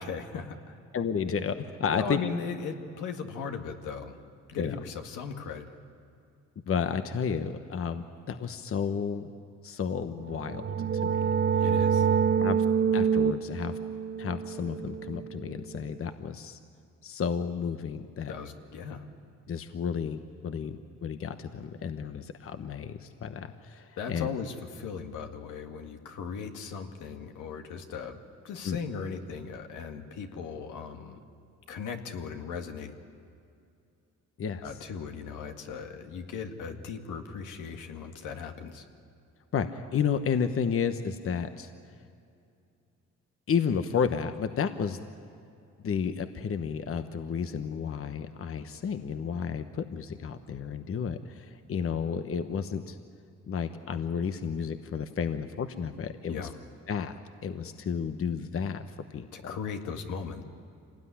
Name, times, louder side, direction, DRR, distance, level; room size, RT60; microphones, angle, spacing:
voice 1, 0.1-0.8 1.9-4.2 4.5-5.7 11.6-12.1 18.3-19.1 24.0-28.2 28.4-31.2 31.7-32.9 34.6-38.9 56.3-56.6 59.3-60.4, left 6 dB, 85° left, 5 dB, 2.1 m, -38 dB
voice 2, 0.9-2.2 4.6-4.8 6.6-9.3 9.6-11.2 12.4-12.6 12.9-13.7 14.2-16.6 17.0-18.3 19.5-24.3 28.6-28.8 34.4-34.6 39.5-41.7 43.5-45.0 45.8-53.0 53.5-56.5 56.9-57.1 57.4-58.8 59.1-59.6, left 6 dB, 45° left, 9 dB, 1.1 m, -32 dB
sound 1, 10.3-15.8, right 7 dB, 35° right, 0.7 m, -27 dB
26.0 x 19.0 x 10.0 m, 2.5 s
cardioid pair, 90°, 30 cm